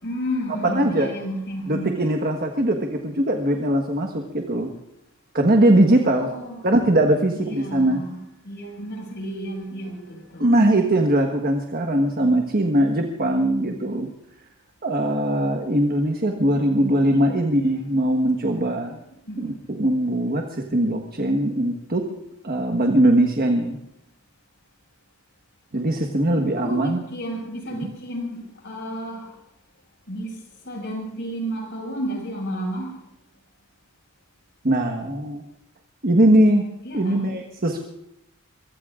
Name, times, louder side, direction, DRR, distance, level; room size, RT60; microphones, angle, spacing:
voice 1, 0.0-2.1 6.1-6.6 7.4-10.7 17.1-17.3 19.3-19.6 26.3-29.3 30.1-33.0 36.8-37.3, equal, 55° left, 0 dB, 6.3 m, -32 dB
voice 2, 0.6-1.1 1.7-4.7 5.3-6.3 6.6-8.0 10.4-14.1 14.8-19.0 19.4-22.0 22.4-23.8 25.7-27.0 27.8-27.9 34.6-35.4 36.0-36.6 36.9-37.8, right 1 dB, 45° right, 3 dB, 1.4 m, -21 dB
24.0 x 23.0 x 2.5 m, 0.83 s
head